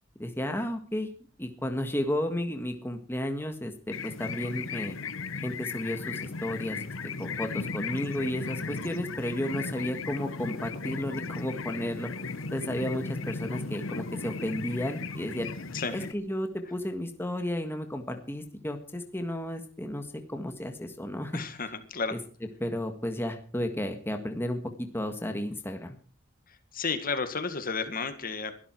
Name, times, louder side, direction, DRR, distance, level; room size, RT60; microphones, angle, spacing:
voice 1, 0.2-1.1 1.4-5.0 5.4-6.8 7.2-12.1 12.5-15.5 15.9-21.4 22.1-22.2 22.6-26.0, left 1 dB, 10° left, 6 dB, 1.6 m, -33 dB
sound 1, 3.9-16.1, left 4 dB, 75° left, 1.1 m, -36 dB
voice 2, 21.3-22.1 26.7-28.5, left 4 dB, 45° left, 9 dB, 1.9 m, -32 dB
22.5 x 12.0 x 4.6 m, 0.43 s
head